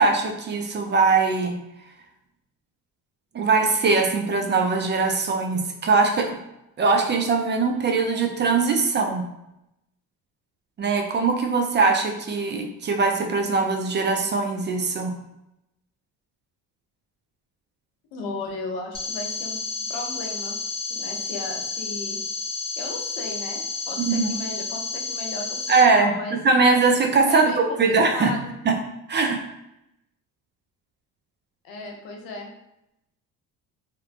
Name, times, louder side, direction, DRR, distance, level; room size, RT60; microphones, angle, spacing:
voice 1, 0.0-1.6 3.3-6.4 6.8-9.3 10.8-15.1 24.0-24.3 25.7-28.3 28.7-28.8 29.1-29.4, right 4 dB, 30° right, 3 dB, 0.4 m, -21 dB
voice 2, 18.1-19.6 19.9-20.6 20.9-22.2 22.8-26.4 27.3-28.5 31.6-32.5, left 3 dB, 85° left, 1 dB, 0.7 m, -35 dB
sound 1, 18.9-25.8, left 4 dB, 15° left, 0.7 m, -31 dB
2.9 x 2.1 x 2.4 m, 0.85 s
supercardioid pair, 70°, 41 cm